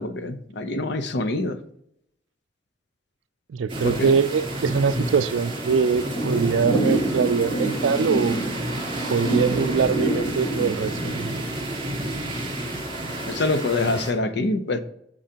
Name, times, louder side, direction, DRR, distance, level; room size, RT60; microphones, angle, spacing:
voice 1, 0.0-1.6 3.8-4.1 13.3-14.8, left 2 dB, 65° left, 0.7 m, -25 dB
voice 2, 3.5-8.5 9.1-11.4, right 6 dB, 80° right, 0.4 m, -23 dB
sound 1, 3.7-14.1, right 1 dB, 30° right, 3.1 m, -30 dB
Thunder / Rain, 4.2-11.2, right 1 dB, 30° left, 1.6 m, -28 dB
8.6 x 6.3 x 2.8 m
head